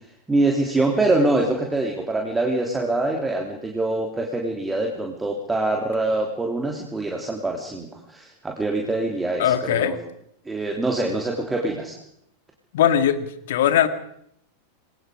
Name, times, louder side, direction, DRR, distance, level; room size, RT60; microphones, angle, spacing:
voice 1, 0.3-10.0 10.5-12.0, right 2 dB, 10° right, 1 dB, 3.5 m, -24 dB
voice 2, 9.4-10.0 12.7-13.9, left 10 dB, 55° left, 11 dB, 2.2 m, -20 dB
29.0 x 22.5 x 5.1 m, 0.73 s
figure-of-eight pair, 90°, 0 cm